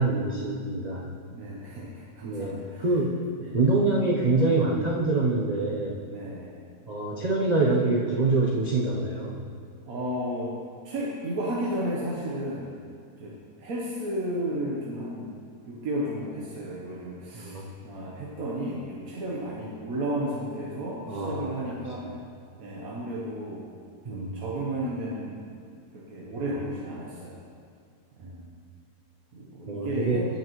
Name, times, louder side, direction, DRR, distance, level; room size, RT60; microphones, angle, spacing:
voice 1, 0.0-1.1 2.2-3.2 3.5-6.0 6.9-9.4 17.3-17.7 21.1-21.5 22.0-22.1 24.0-24.4 28.2-28.4 29.7-30.2, right 3 dB, 45° right, -4 dB, 0.5 m, -25 dB
voice 2, 1.3-2.8 3.4-3.6 6.1-6.5 9.8-10.6 10.8-12.7 13.2-22.1 22.6-23.6 24.1-25.4 25.9-27.4 28.2-28.3 29.3-30.3, right 1 dB, 65° right, -5 dB, 1.4 m, -33 dB
16.0 x 5.9 x 3.0 m, 2.3 s
omnidirectional pair, 1.7 m